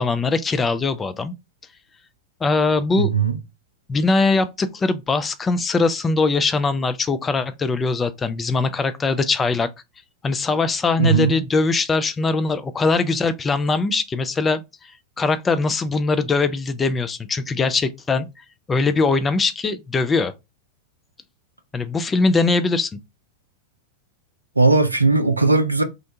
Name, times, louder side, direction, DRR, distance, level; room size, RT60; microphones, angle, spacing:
voice 1, 0.0-1.3 2.4-3.1 3.9-9.7 10.2-14.9 15.2-18.3 18.7-20.3 21.7-22.9, left 3 dB, 15° left, 0.3 m, -21 dB
voice 2, 3.0-3.3 11.0-11.4 24.6-25.8, right 3 dB, 85° right, 0.4 m, -18 dB
2.5 x 2.2 x 2.6 m
figure-of-eight pair, 90°, 0 cm